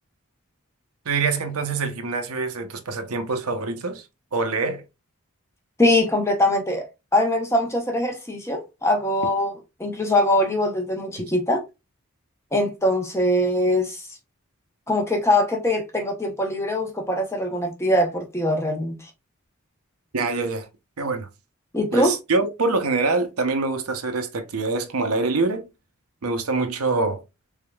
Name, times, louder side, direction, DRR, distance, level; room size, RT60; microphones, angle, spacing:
voice 1, 1.1-4.0 4.3-4.8 20.1-20.7 21.0-21.3 21.9-25.7 26.2-27.2, right 3 dB, 85° right, 0.7 m, -25 dB
voice 2, 5.8-6.8 7.1-9.5 9.8-11.6 12.5-14.1 14.9-19.1 21.7-22.1, left 1 dB, 10° left, 0.7 m, -22 dB
3.5 x 3.5 x 2.3 m
head